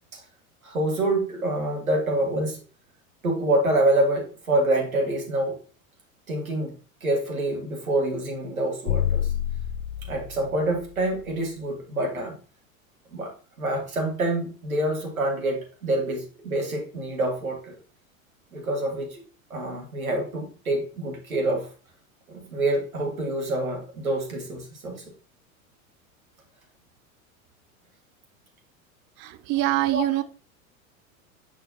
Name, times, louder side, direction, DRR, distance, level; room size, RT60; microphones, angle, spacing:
voice 1, 0.6-2.6 3.2-5.6 6.3-6.7 7.0-9.3 10.1-12.3 13.1-13.3 13.6-17.8 18.5-19.2 19.5-21.7 22.3-25.0 29.5-30.2, right 1 dB, 80° right, 1 dB, 1.8 m, -26 dB
sound 1, 8.9-11.3, left 11 dB, 45° left, 0.6 m, -29 dB
voice 2, 29.5-30.2, right 16 dB, 30° right, 13 dB, 0.4 m, -23 dB
6.2 x 5.6 x 2.8 m, 0.38 s
figure-of-eight pair, 85°, 41 cm